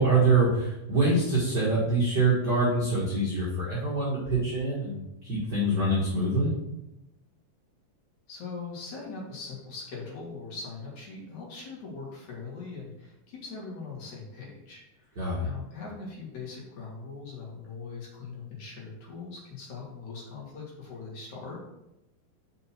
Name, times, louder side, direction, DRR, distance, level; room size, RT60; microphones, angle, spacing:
voice 1, 0.0-6.5 15.2-15.5, right 2 dB, 40° right, -7 dB, 1.7 m, -25 dB
voice 2, 8.3-21.7, left 4 dB, 60° left, -3 dB, 3.2 m, -41 dB
5.9 x 5.4 x 5.8 m, 0.90 s
omnidirectional pair, 4.1 m